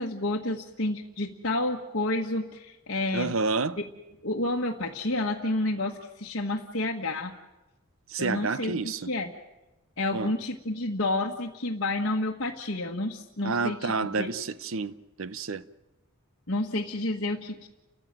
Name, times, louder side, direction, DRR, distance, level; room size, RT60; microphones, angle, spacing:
voice 1, 0.0-3.3 4.2-7.3 8.2-9.3 10.0-14.3 16.5-17.7, left 2 dB, 55° left, 1.5 m, -30 dB
voice 2, 3.1-3.8 8.1-9.1 10.1-10.3 13.4-15.6, right 4 dB, 65° right, 0.8 m, -29 dB
30.0 x 15.0 x 9.1 m
head